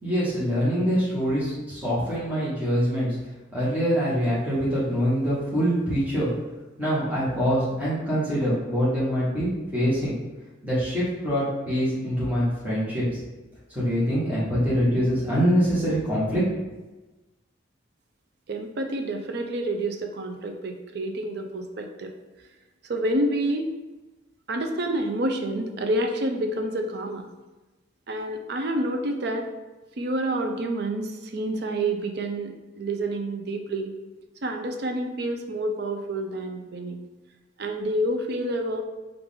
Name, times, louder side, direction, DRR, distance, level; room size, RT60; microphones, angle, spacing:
voice 1, 0.0-3.2 3.5-6.3 6.8-10.1 10.6-13.2 13.7-16.4, equal, 10° right, -10 dB, 1.2 m, -24 dB
voice 2, 18.5-22.1 22.8-23.7 24.5-27.3 28.1-29.5 30.0-33.9 34.4-37.0 37.6-38.8, right 1 dB, 55° right, 5 dB, 0.4 m, -28 dB
4.6 x 2.5 x 3.6 m, 1.1 s
head